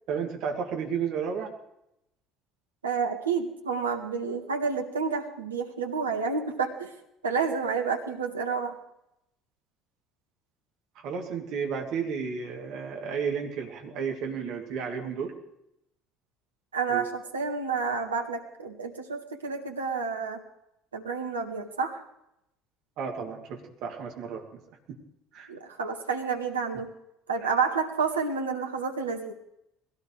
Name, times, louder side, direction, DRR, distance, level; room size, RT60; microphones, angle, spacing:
voice 1, 0.1-1.5 10.9-15.3 16.9-17.1 23.0-24.6 24.9-25.0 25.3-25.5 27.4-27.5, right 6 dB, 55° right, 1 dB, 2.8 m, -32 dB
voice 2, 2.8-6.9 7.2-8.8 16.7-20.4 20.9-22.0 25.5-26.9 27.3-29.3, right 5 dB, 80° right, 3 dB, 1.7 m, -29 dB
21.5 x 17.0 x 3.3 m, 0.81 s
figure-of-eight pair, 60°, 0 cm